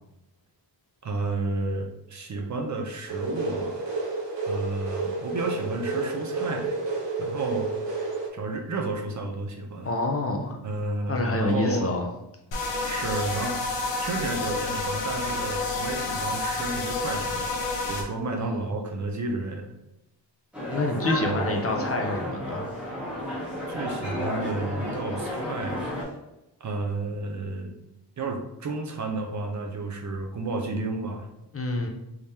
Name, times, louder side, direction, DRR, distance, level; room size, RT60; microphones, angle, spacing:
voice 1, 1.0-3.9 4.5-7.7 8.3-9.9 10.6-12.0 12.8-13.6 14.0-17.5 17.9-19.7 21.2-21.5 23.7-26.2 26.6-27.7 28.2-31.3, right 2 dB, 40° right, 3 dB, 0.6 m, -31 dB
sound 1, 3.1-8.3, right 3 dB, 75° right, 1.0 m, -30 dB
voice 2, 9.8-10.6 11.1-12.0 18.4-18.6 20.7-22.6 31.5-31.9, left 2 dB, 35° left, 2 dB, 0.5 m, -27 dB
sound 2, 12.5-18.0, left 3 dB, 75° left, 0.9 m, -29 dB
sound 3, 20.5-26.0, left 1 dB, 5° right, 0.9 m, -32 dB
3.6 x 3.2 x 2.7 m, 0.89 s
wide cardioid pair, 125°, 44 cm